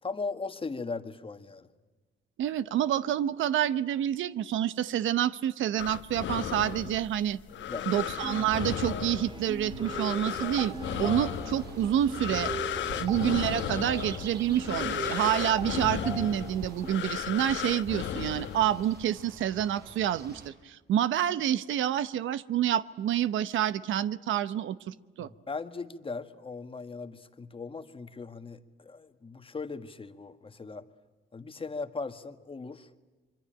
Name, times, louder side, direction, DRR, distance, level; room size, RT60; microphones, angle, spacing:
voice 1, 0.0-1.7 7.6-8.0 12.9-13.2 25.2-30.8 31.3-32.9, left 4 dB, 25° left, 8 dB, 1.6 m, -38 dB
voice 2, 2.4-7.4 7.9-10.7 11.0-12.5 13.0-25.3, right 11 dB, 75° right, 15 dB, 0.9 m, -28 dB
sound 1, 5.8-19.1, left 11 dB, 70° left, 1.1 m, -35 dB
sound 2, 8.2-16.9, right 3 dB, 25° right, 2.9 m, -40 dB
sound 3, 10.4-20.5, right 4 dB, 55° right, 5.0 m, -47 dB
26.0 x 24.0 x 8.9 m, 1.3 s
cardioid pair, 90°, 20 cm